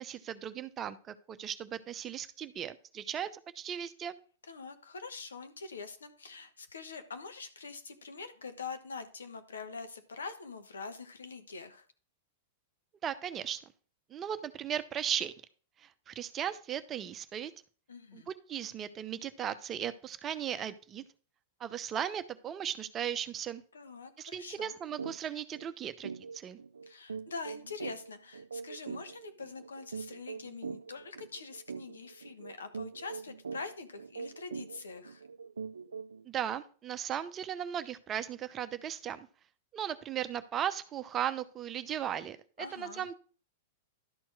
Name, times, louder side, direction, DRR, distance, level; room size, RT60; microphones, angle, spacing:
voice 1, 0.0-4.2 13.0-13.6 14.1-15.3 15.8-17.5 18.1-21.0 21.6-23.6 24.2-26.6 36.3-39.3 39.7-43.1, right 9 dB, 30° right, 11 dB, 0.7 m, -37 dB
voice 2, 4.5-11.9 17.9-18.3 23.7-24.8 26.9-35.2 42.6-43.1, left 4 dB, 80° left, 9 dB, 1.1 m, -44 dB
sound 1, 25.0-25.2 25.5-25.7 26.0-36.3, right 5 dB, 80° right, 0.4 m, -43 dB
12.0 x 4.4 x 4.8 m, 0.40 s
figure-of-eight pair, 100°, 0 cm